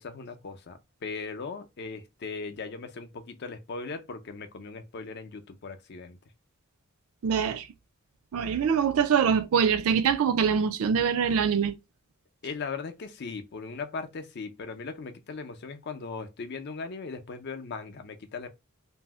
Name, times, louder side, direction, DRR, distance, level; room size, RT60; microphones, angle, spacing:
voice 1, 0.0-6.2 12.4-18.5, left 4 dB, 55° left, 0.5 m, -38 dB
voice 2, 7.2-7.7 8.3-11.7, right 7 dB, 90° right, 0.4 m, -24 dB
2.6 x 2.0 x 3.4 m
head